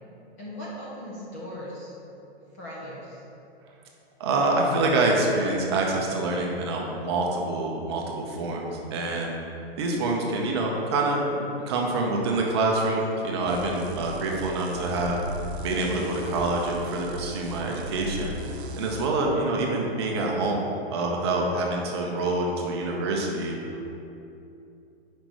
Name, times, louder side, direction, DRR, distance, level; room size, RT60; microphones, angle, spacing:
voice 1, 0.4-1.9 2.6-3.2, equal, 15° left, -7 dB, 0.5 m, -38 dB
voice 2, 4.2-9.3 9.8-15.2 15.6-18.4 18.8-20.6 20.9-23.6, right 2 dB, 25° right, -1 dB, 0.6 m, -26 dB
sound 1, 13.5-19.1, right 2 dB, 85° right, 0.8 m, -37 dB
5.8 x 5.2 x 4.6 m, 2.8 s
hypercardioid pair, 170°, 32 cm